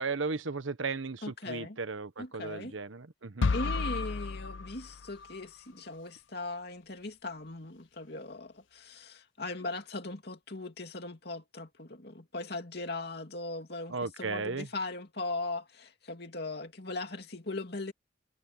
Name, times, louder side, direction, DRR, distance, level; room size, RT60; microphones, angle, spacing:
voice 1, 0.0-3.5 13.9-14.7, right 4 dB, 75° right, 1.1 m, -35 dB
voice 2, 1.2-1.8 2.2-2.8 3.5-17.9, left 2 dB, 55° left, 2.8 m, -39 dB
sound 1, 3.4-5.4, left 4 dB, 75° left, 0.6 m, -32 dB
head